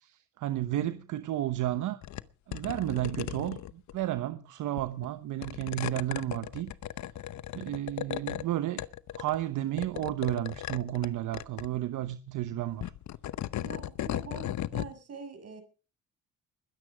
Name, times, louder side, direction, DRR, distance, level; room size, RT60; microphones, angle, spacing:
voice 1, 0.0-2.0 2.5-6.7 7.5-8.8 9.1-12.9, right 13 dB, 80° right, 1.1 m, -32 dB
sound 1, 2.0-2.2 2.5-3.9 4.8-5.1 5.4-8.4 8.8-9.4 9.8-11.1 11.3-11.7 12.7-14.9, left 12 dB, 70° left, 0.9 m, -36 dB
voice 2, 13.6-15.6, right 5 dB, 55° right, 6.6 m, -44 dB
21.5 x 10.0 x 5.0 m
cardioid pair, 90°, 30 cm